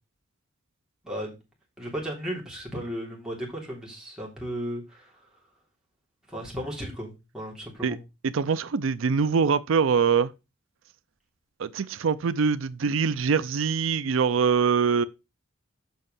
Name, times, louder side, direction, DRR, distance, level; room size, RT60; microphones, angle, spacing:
voice 1, 1.0-1.4 1.8-5.1 6.3-8.0, equal, 5° right, 3.2 m, -35 dB
voice 2, 8.2-10.3 11.6-15.0, right 5 dB, 90° right, 0.5 m, -23 dB
7.3 x 5.4 x 5.5 m
head